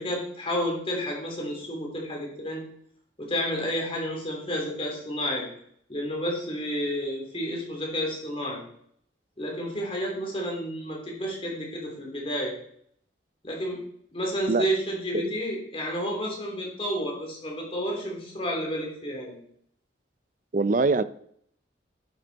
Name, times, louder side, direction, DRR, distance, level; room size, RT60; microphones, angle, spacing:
voice 1, 0.0-2.6 3.2-5.4 5.9-8.6 9.4-12.5 13.4-13.8 14.1-19.4, equal, 30° left, -1 dB, 3.1 m, -30 dB
voice 2, 20.5-21.0, right 3 dB, 40° right, 14 dB, 0.5 m, -23 dB
11.0 x 7.9 x 4.1 m, 0.67 s
head